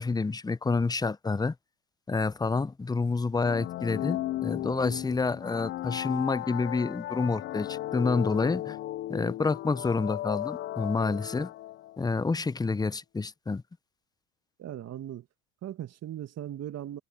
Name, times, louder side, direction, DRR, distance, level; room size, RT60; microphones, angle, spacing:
voice 1, 0.0-1.5 2.1-8.8 9.1-11.5 12.0-13.6, left 4 dB, 10° left, 0.8 m, -28 dB
sound 1, 3.4-12.0, left 14 dB, 30° left, 0.4 m, -35 dB
voice 2, 14.6-15.3 15.6-17.0, right 11 dB, 35° right, 1.8 m, -38 dB
hypercardioid pair, 80°, 42 cm